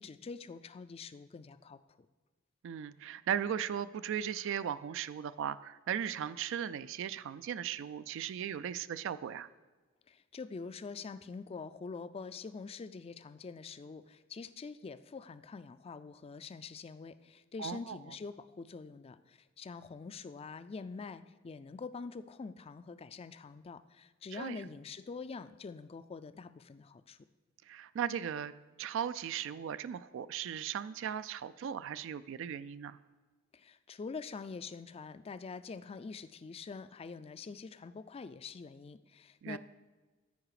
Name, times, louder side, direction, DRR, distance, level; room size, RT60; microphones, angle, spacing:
voice 1, 0.0-1.8 10.1-27.2 33.5-39.6, left 4 dB, 30° left, 13 dB, 0.3 m, -45 dB
voice 2, 2.6-9.5 17.6-18.0 24.3-24.6 27.7-33.0 39.4-39.6, right 9 dB, 65° right, 15 dB, 0.3 m, -37 dB
13.5 x 4.9 x 4.9 m, 1.3 s
head